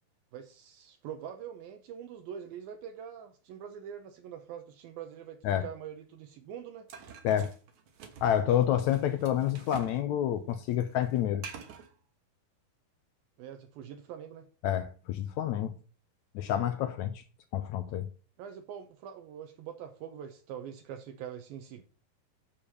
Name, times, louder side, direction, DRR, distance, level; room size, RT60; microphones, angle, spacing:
voice 1, 0.3-6.9 13.4-14.5 18.4-21.8, right 9 dB, 75° right, 2.6 m, -44 dB
sound 1, 6.9-10.0 10.3-11.9, right 6 dB, 60° right, 2.5 m, -47 dB
voice 2, 8.2-11.4 14.6-15.7 16.3-17.1 17.5-18.1, left 10 dB, 85° left, 1.6 m, -28 dB
8.8 x 6.9 x 5.4 m
omnidirectional pair, 4.3 m